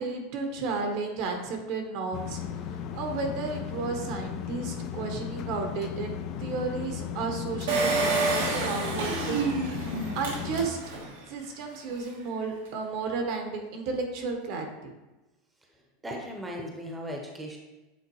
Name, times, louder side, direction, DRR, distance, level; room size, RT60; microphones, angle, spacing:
voice 1, 0.0-10.8 11.3-14.9, right 4 dB, 60° right, 4 dB, 1.1 m, -33 dB
sound 1, 2.1-10.7, left 8 dB, 50° left, 0.5 m, -36 dB
Engine, 7.7-11.1 11.6-11.7 11.9-12.0, right 3 dB, 90° right, 1.4 m, -28 dB
voice 2, 16.0-17.6, equal, 10° right, 1 dB, 0.9 m, -37 dB
8.3 x 3.6 x 3.1 m, 1.1 s
supercardioid pair, 130°, 0 cm